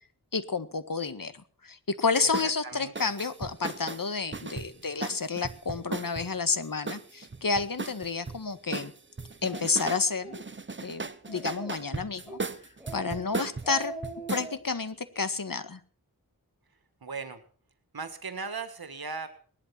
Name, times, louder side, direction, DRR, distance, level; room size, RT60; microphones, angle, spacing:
voice 1, 0.3-1.3 1.6-8.9 9.4-10.4 10.8-12.4 12.9-13.9 14.3-15.8, left 4 dB, 65° left, 11 dB, 1.7 m, -30 dB
sound 1, 2.3-2.5 3.0-6.3 6.9-8.4 8.7-10.1 10.3-14.5, right 3 dB, 30° right, 0.9 m, -37 dB
voice 2, 2.6-2.9 17.0-17.4 17.9-19.3, right 4 dB, 75° right, 10 dB, 1.8 m, -37 dB
Speech, 9.5-9.6 10.1-10.4 10.8-10.9 11.2-11.9 12.3-12.5 12.8-13.2 13.5-14.6, right 2 dB, 5° right, 7.1 m, -41 dB
19.0 x 11.5 x 6.0 m, 0.44 s
wide cardioid pair, 60°, 36 cm